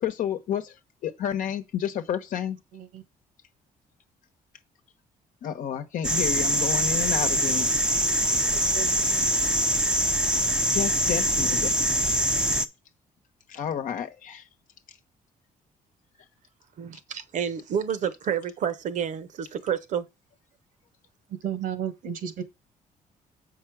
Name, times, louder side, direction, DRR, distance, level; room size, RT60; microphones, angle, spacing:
voice 1, 0.0-0.7 1.0-2.6 5.4-7.7 9.3-9.4 10.7-11.7 12.1-12.2 13.5-14.4, left 9 dB, 65° left, 1.0 m, -30 dB
voice 2, 2.7-3.0 8.3-9.3 21.4-22.4, right 8 dB, 80° right, 1.5 m, -34 dB
sound 1, 6.0-12.7, right 1 dB, 5° right, 0.6 m, -24 dB
voice 3, 16.8-20.1, right 8 dB, 60° right, 1.0 m, -29 dB
7.7 x 5.5 x 4.8 m
cardioid pair, 150°, 15 cm